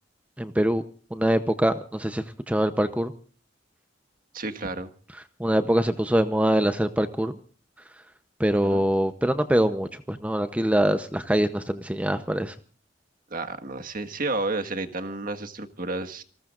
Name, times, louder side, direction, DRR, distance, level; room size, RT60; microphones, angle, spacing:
voice 1, 0.4-0.8 1.1-3.1 5.4-7.3 8.4-12.5, right 1 dB, 10° right, 9 dB, 0.8 m, -24 dB
voice 2, 4.3-4.9 8.5-8.8 13.3-16.2, right 2 dB, 50° right, 7 dB, 1.7 m, -31 dB
28.5 x 19.5 x 2.5 m, 0.41 s
head